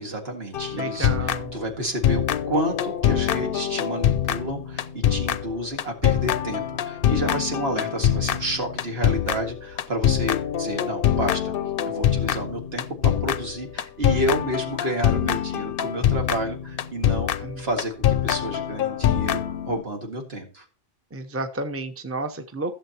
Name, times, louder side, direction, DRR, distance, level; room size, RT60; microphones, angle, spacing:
voice 1, 0.0-11.5 11.9-17.3 17.6-19.4 19.7-20.6, right 1 dB, 70° right, 2 dB, 2.3 m, -30 dB
sound 1, 0.5-1.8 2.0-19.8, left 10 dB, 65° left, 0.7 m, -24 dB
voice 2, 0.7-1.5 17.4-17.6 21.1-22.7, right 2 dB, 15° right, 7 dB, 0.8 m, -31 dB
15.0 x 7.2 x 2.9 m, 0.34 s
omnidirectional pair, 1.1 m